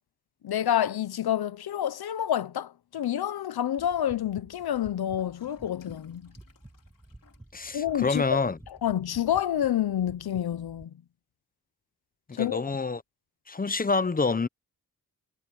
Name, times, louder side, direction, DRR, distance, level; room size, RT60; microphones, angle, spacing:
voice 1, 0.4-6.3 7.7-8.4 8.8-10.9 12.3-12.6, left 10 dB, 75° left, 0.9 m, -28 dB
sound 1, 3.8-10.8, right 1 dB, 10° right, 1.8 m, -52 dB
Gurgling / Toilet flush, 5.2-9.2, left 6 dB, 60° left, 3.7 m, -57 dB
voice 2, 7.5-8.6 12.3-13.0 13.5-14.5, left 4 dB, 25° left, 0.8 m, -27 dB
wide cardioid pair, 90°, 38 cm